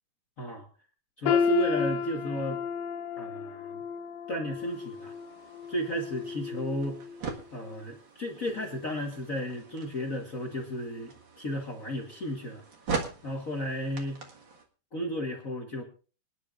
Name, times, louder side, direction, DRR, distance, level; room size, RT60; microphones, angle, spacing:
voice 1, 1.2-2.6 3.2-3.8 4.3-5.1 5.7-7.0 7.5-12.6 13.2-14.2 14.9-15.8, equal, 50° left, 2 dB, 1.0 m, -33 dB
sound 1, 1.3-7.2 7.6-7.8 8.6-8.7, left 6 dB, 75° left, 2.2 m, -32 dB
sound 2, 4.6-14.6, right 4 dB, 45° right, 1.8 m, -42 dB
26.5 x 10.0 x 2.5 m, 0.36 s
omnidirectional pair, 3.8 m